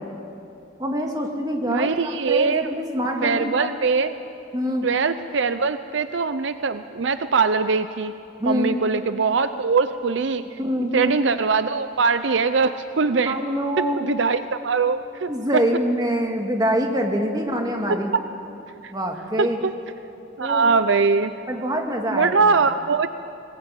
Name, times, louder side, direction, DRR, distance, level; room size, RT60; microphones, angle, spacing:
voice 1, 0.8-3.7 4.5-4.9 8.4-8.8 10.6-11.1 13.3-14.1 15.3-18.1 18.9-19.6 20.4-20.7 21.5-22.6, equal, 20° right, 2 dB, 2.1 m, -25 dB
voice 2, 1.7-2.6 3.2-4.1 4.8-8.1 8.4-10.4 10.9-13.4 14.0-15.3 18.8-18.9 19.4-19.7 20.4-21.3 22.1-23.1, right 4 dB, 65° right, 11 dB, 0.6 m, -22 dB
20.5 x 20.5 x 8.9 m, 2.7 s
head